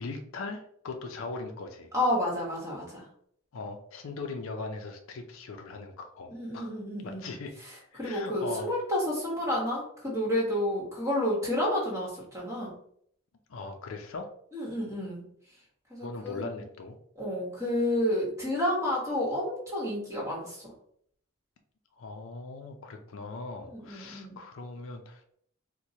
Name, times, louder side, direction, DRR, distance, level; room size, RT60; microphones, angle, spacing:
voice 1, 0.0-1.9 3.5-6.8 7.0-7.5 7.9-8.7 13.5-14.3 16.0-17.0 22.0-25.3, left 3 dB, 70° left, 5 dB, 0.4 m, -39 dB
voice 2, 1.9-3.0 6.3-7.3 7.7-12.7 14.5-15.2 15.9-16.5 17.2-20.7 23.7-24.4, left 1 dB, 15° right, -5 dB, 1.2 m, -30 dB
4.5 x 2.1 x 2.7 m, 0.66 s
head